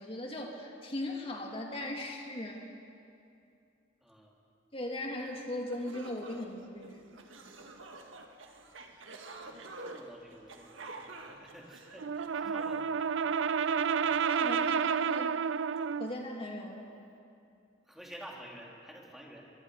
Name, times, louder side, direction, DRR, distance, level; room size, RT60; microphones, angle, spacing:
voice 1, 0.0-2.7 4.7-7.1 12.5-12.6 14.3-15.3 16.0-16.9, left 1 dB, 30° left, 0 dB, 2.5 m, -38 dB
voice 2, 4.0-4.4 9.4-14.7 17.8-19.5, equal, ahead, -2 dB, 2.9 m, -51 dB
sound 1, 5.3-5.4 5.7-12.8, right 2 dB, 90° right, 1.6 m, -48 dB
Brass instrument, 12.0-16.2, right 6 dB, 75° right, 0.4 m, -30 dB
24.5 x 23.0 x 5.0 m, 2.6 s
head